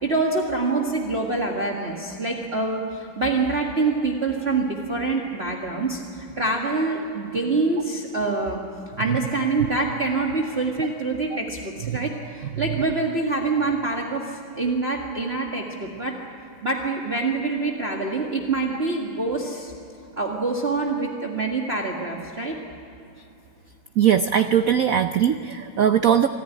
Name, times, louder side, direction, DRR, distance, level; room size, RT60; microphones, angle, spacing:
voice 1, 0.0-8.6 9.0-16.2 16.6-19.7 20.2-22.5, right 3 dB, 30° right, -1 dB, 1.9 m, -25 dB
voice 2, 24.0-26.3, right 9 dB, 90° right, 9 dB, 0.7 m, -20 dB
25.5 x 14.5 x 10.0 m, 2.8 s
omnidirectional pair, 2.3 m